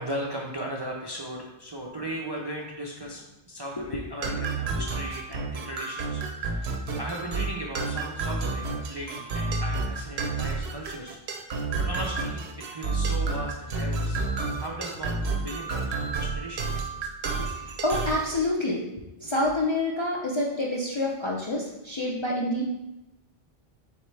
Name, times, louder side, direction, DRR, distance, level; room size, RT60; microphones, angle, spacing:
voice 1, 0.0-6.7 7.0-11.2 11.5-14.2 14.6-16.7, right 1 dB, 40° right, -2 dB, 0.4 m, -37 dB
sound 1, 4.2-18.3, right 3 dB, 85° right, 0.9 m, -30 dB
voice 2, 17.4-18.9 19.2-22.7, left 1 dB, 45° left, -3 dB, 0.4 m, -28 dB
4.3 x 3.5 x 3.2 m, 0.95 s
omnidirectional pair, 1.0 m